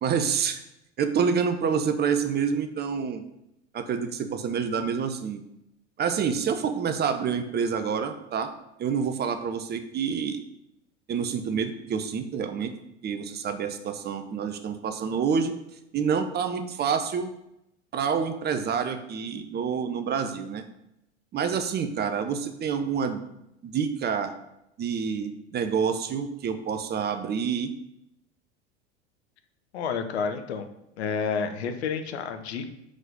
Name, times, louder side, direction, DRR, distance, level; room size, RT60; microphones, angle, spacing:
voice 1, 0.0-0.6 1.0-3.2 3.7-5.4 6.0-8.5 8.8-10.4 11.1-12.7 13.0-15.5 15.9-17.3 17.9-20.6 21.3-23.2 23.6-24.3 24.8-27.7, right 6 dB, 30° right, 8 dB, 0.8 m, -27 dB
voice 2, 29.7-30.7 31.0-32.7, left 6 dB, 65° left, 8 dB, 1.0 m, -30 dB
5.9 x 5.0 x 5.3 m, 0.83 s
figure-of-eight pair, 80°, 35 cm